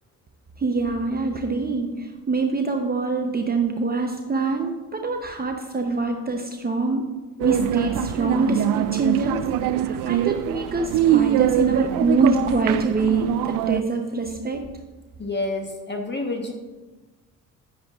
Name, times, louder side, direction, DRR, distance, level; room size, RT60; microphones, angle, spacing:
voice 1, 0.6-14.6, right 3 dB, 25° right, 4 dB, 0.8 m, -24 dB
sound 1, 7.4-13.8, right 12 dB, 70° right, 0.5 m, -23 dB
voice 2, 15.2-16.5, left 2 dB, 30° left, 3 dB, 1.2 m, -28 dB
10.5 x 9.4 x 2.4 m, 1.2 s
supercardioid pair, 75°, 34 cm